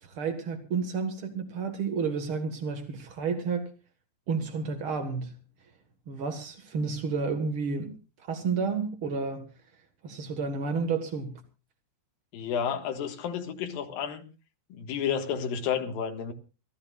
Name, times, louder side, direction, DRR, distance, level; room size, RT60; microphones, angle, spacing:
voice 1, 0.0-3.7 4.3-5.3 6.1-7.9 8.3-9.5 10.0-11.4, right 5 dB, 85° right, 1.1 m, -31 dB
voice 2, 12.3-14.3 14.7-16.3, left 7 dB, 60° left, 3.0 m, -31 dB
26.5 x 15.0 x 2.4 m
omnidirectional pair, 5.2 m